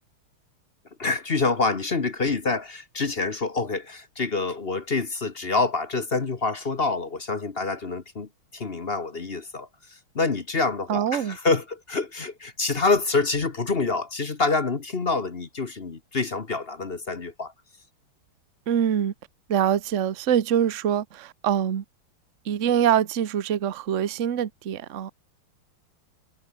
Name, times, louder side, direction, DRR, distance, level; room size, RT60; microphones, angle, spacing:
voice 1, 1.0-17.5, left 3 dB, 30° left, 1.3 m, -27 dB
voice 2, 10.9-11.4 18.7-19.1 19.5-21.8 22.4-25.1, right 9 dB, 45° right, 1.2 m, -24 dB
omnidirectional pair, 2.3 m